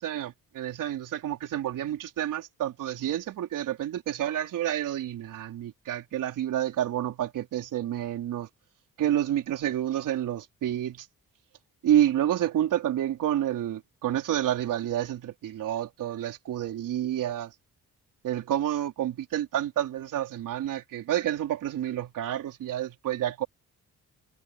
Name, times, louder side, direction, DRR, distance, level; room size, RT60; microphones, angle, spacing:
voice 1, 0.0-8.5 9.0-11.1 11.8-17.5 18.2-23.5, right 11 dB, 85° right, 4.1 m, -29 dB
cardioid pair, 85°, 31 cm